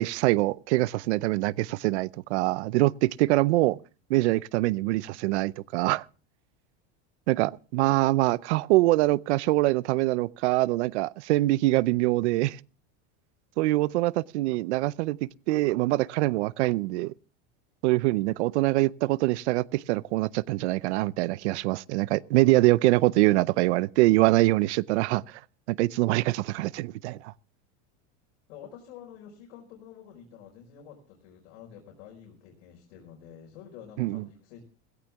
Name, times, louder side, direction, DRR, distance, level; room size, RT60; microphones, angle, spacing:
voice 1, 0.0-3.8 4.1-6.0 7.3-12.6 13.6-15.2 15.5-17.1 17.8-25.2 25.7-27.3 34.0-34.2, right 19 dB, 90° right, 0.6 m, -24 dB
voice 2, 13.6-14.0 14.4-14.8 28.5-34.6, left 9 dB, 75° left, 4.8 m, -49 dB
16.5 x 16.0 x 3.5 m
supercardioid pair, 160°, 33 cm